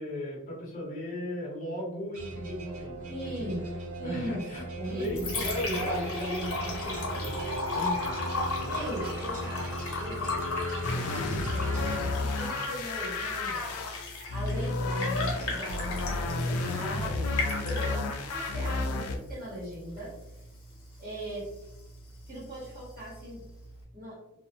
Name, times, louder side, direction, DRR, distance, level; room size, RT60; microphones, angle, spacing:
voice 1, 0.0-3.1 3.4-3.5 4.0-7.3 7.7-8.5, equal, 35° left, -4 dB, 0.8 m, -36 dB
sound 1, 2.1-12.8, right 1 dB, 80° right, 0.7 m, -38 dB
voice 2, 3.1-3.7 4.0-4.4 4.8-5.2 5.5-5.9 8.7-10.4 10.9-13.8 14.3-20.2 21.0-21.5 22.3-23.4 23.9-24.2, equal, 40° right, -6 dB, 1.2 m, -40 dB
Liquid, 4.8-23.8, left 2 dB, 70° left, 0.8 m, -37 dB
sound 2, 10.8-19.2, left 2 dB, 90° left, 0.4 m, -31 dB
2.4 x 2.1 x 2.7 m, 0.88 s
head